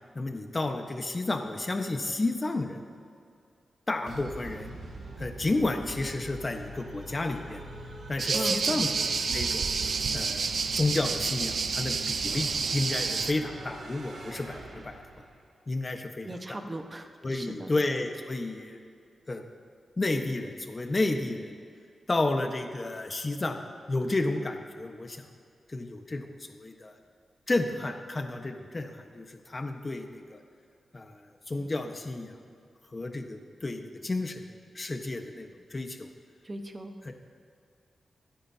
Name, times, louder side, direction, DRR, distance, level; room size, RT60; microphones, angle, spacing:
voice 1, 0.1-2.8 3.9-4.8 5.2-7.6 8.1-8.9 9.3-9.7 10.1-10.5 10.8-15.0 15.7-16.6 17.2-18.8 19.3-19.4 20.0-21.5 22.1-23.6 23.9-25.2 25.7-26.9 27.5-30.4 30.9-32.3 32.9-36.1 37.0-37.1, left 2 dB, 35° left, 4 dB, 1.3 m, -31 dB
sound 1, 4.1-15.5, right 2 dB, 80° right, 1.9 m, -44 dB
sound 2, 8.2-13.3, right 5 dB, 65° right, 0.6 m, -29 dB
voice 2, 8.3-8.8 16.2-17.7 36.4-37.1, right 1 dB, 30° right, 5 dB, 1.3 m, -38 dB
26.0 x 9.9 x 2.9 m, 2.4 s
cardioid pair, 75°, 0 cm